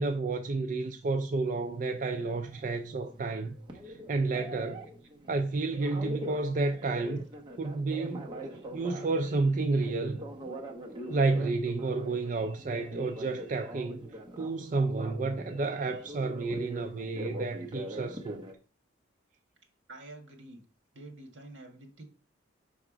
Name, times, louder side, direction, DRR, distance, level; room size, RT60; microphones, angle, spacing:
voice 1, 0.0-3.5 3.8-4.9 5.3-7.2 7.6-10.2 11.1-14.1 14.4-18.5, right 3 dB, 40° right, 0.4 m, -31 dB
Telephone, 1.4-18.5, equal, 25° right, 0.9 m, -44 dB
voice 2, 19.9-20.6 20.9-22.0, right 2 dB, 70° right, 1.6 m, -48 dB
5.9 x 3.5 x 4.9 m
head